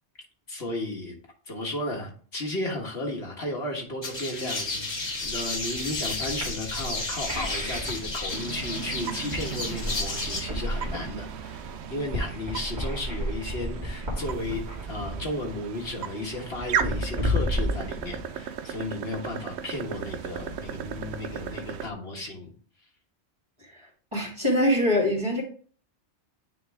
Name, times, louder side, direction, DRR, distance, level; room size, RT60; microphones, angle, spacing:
voice 1, 0.5-1.1 1.5-22.5, left 1 dB, 60° left, 1.7 m, -34 dB
sound 1, 4.0-10.4, left 3 dB, 80° left, 2.1 m, -33 dB
sound 2, 5.2-18.6, left 1 dB, 40° right, 2.2 m, -33 dB
sound 3, 8.3-21.9, right 8 dB, 75° right, 0.9 m, -36 dB
voice 2, 24.1-25.4, left 1 dB, 25° right, 2.5 m, -23 dB
9.7 x 3.4 x 3.6 m
omnidirectional pair, 1.2 m